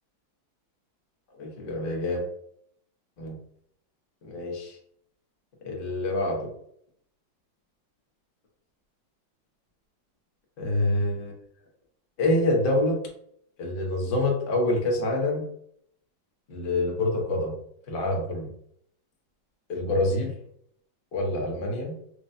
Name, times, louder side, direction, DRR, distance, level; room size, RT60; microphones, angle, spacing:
voice 1, 1.4-2.2 3.2-3.4 4.2-4.8 5.6-6.5 10.6-11.3 12.2-13.0 13.6-15.4 16.5-17.5 17.9-18.5 19.7-20.3 21.1-21.9, left 1 dB, 45° left, -1 dB, 0.7 m, -26 dB
4.4 x 2.2 x 2.6 m, 0.68 s
omnidirectional pair, 2.1 m